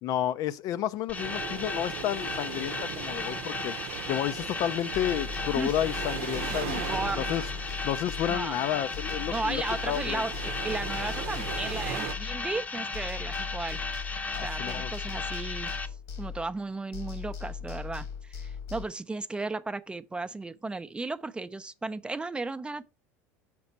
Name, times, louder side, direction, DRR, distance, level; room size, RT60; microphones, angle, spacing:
voice 1, 0.0-3.8 4.1-6.8 7.2-7.4 7.8-10.2 14.3-14.9, left 11 dB, 60° left, 0.5 m, -31 dB
sound 1, 1.1-15.9, left 3 dB, 20° left, 0.7 m, -36 dB
sound 2, 1.1-12.1, right 9 dB, 75° right, 0.7 m, -39 dB
sound 3, 4.9-8.7 8.9-12.7 12.9-16.7 16.9-18.9, left 6 dB, 85° left, 1.6 m, -39 dB
voice 2, 6.5-7.2 8.3-8.6 9.3-13.8 14.4-15.7 16.2-22.8, right 3 dB, 15° right, 0.5 m, -35 dB
6.0 x 4.2 x 5.4 m
supercardioid pair, 100°, 7 cm